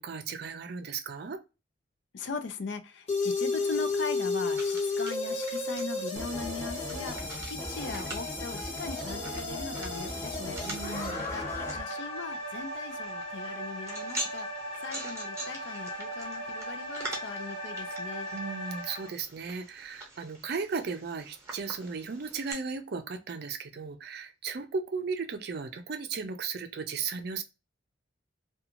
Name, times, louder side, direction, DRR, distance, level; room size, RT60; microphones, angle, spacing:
voice 1, 0.0-1.4 10.6-11.2 18.3-27.4, right 5 dB, 55° right, 0.4 m, -36 dB
voice 2, 2.1-10.6 11.3-18.3, left 4 dB, 65° left, 0.4 m, -40 dB
sound 1, 3.1-19.1, left 2 dB, 35° left, 0.9 m, -35 dB
sound 2, 3.5-22.5, right 1 dB, 15° right, 0.8 m, -45 dB
sound 3, 6.2-11.8, left 1 dB, 15° left, 0.5 m, -39 dB
2.5 x 2.3 x 2.8 m
head